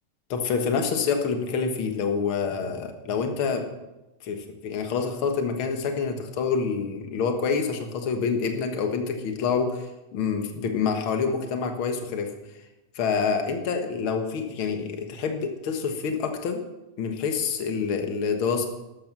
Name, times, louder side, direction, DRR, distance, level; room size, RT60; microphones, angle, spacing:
voice 1, 0.3-3.6 4.2-12.3 13.0-16.6 17.0-18.7, left 5 dB, 50° left, 5 dB, 1.8 m, -27 dB
13.5 x 12.5 x 6.1 m, 1.0 s
omnidirectional pair, 3.7 m